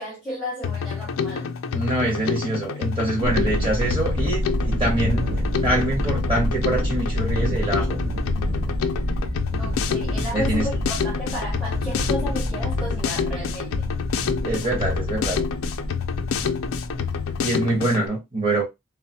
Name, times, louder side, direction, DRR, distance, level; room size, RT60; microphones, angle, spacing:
voice 1, 0.0-1.5 3.2-3.3 9.6-13.9, equal, 5° right, 0.8 m, -33 dB
Drum kit, 0.6-18.1, left 6 dB, 80° left, 0.4 m, -28 dB
voice 2, 1.7-5.2 5.6-8.0 10.3-10.7 14.4-15.4 17.4-18.6, right 2 dB, 25° right, 1.3 m, -25 dB
Thunder, 3.2-17.4, equal, 50° right, 0.7 m, -28 dB
3.0 x 2.0 x 2.8 m
head